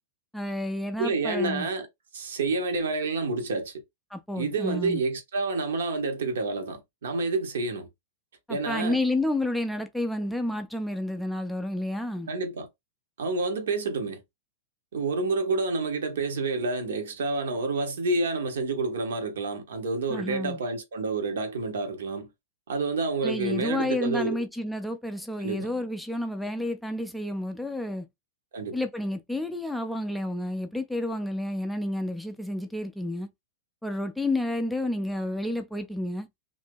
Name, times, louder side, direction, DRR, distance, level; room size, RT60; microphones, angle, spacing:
voice 1, 0.3-1.7 4.1-5.0 8.5-12.3 20.1-20.6 23.2-28.1 28.7-33.3 33.8-36.3, left 1 dB, ahead, 0.4 m, -30 dB
voice 2, 1.0-1.9 2.1-3.8 4.3-7.9 8.5-9.0 12.3-12.7 13.2-14.2 14.9-22.3 22.7-24.4 25.4-25.7 28.5-28.8, right 3 dB, 60° right, 0.9 m, -29 dB
2.8 x 2.6 x 3.5 m
figure-of-eight pair, 95°, 0 cm